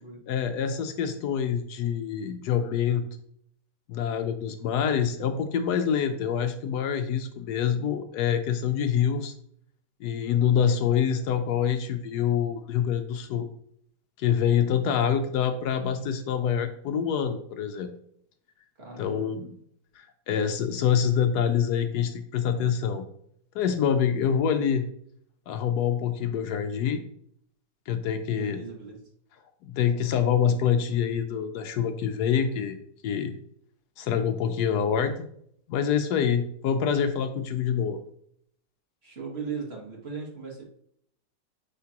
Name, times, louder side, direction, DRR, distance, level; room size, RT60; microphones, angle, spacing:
voice 1, 0.3-3.0 3.9-9.3 10.0-13.5 14.2-17.9 19.0-19.5 20.0-23.0 23.5-24.8 25.5-27.0 27.9-28.6 29.6-32.8 33.0-33.3 34.0-35.3 35.7-38.0, left 8 dB, 75° left, 8 dB, 1.1 m, -26 dB
voice 2, 18.8-19.4 24.2-24.4 28.3-29.0 36.2-36.5 39.0-40.6, right 5 dB, 40° right, -2 dB, 1.7 m, -38 dB
9.2 x 3.7 x 2.9 m, 0.68 s
omnidirectional pair, 1.8 m